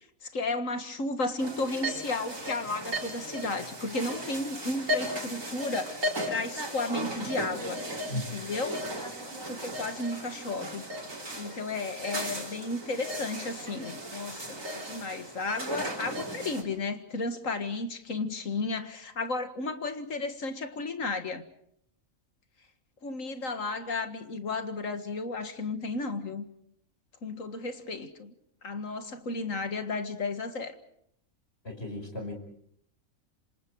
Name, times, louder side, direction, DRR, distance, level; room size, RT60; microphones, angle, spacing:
voice 1, 0.2-7.8 8.1-8.8 9.5-10.8 11.3-21.4 23.0-26.4 27.2-28.3 28.6-30.7, left 3 dB, 70° left, 8 dB, 2.1 m, -33 dB
sound 1, 1.4-16.6, equal, 75° right, 4.9 m, -36 dB
voice 2, 31.6-32.3, left 1 dB, 50° left, 3 dB, 5.6 m, -35 dB
28.0 x 26.0 x 4.8 m, 0.70 s
omnidirectional pair, 1.4 m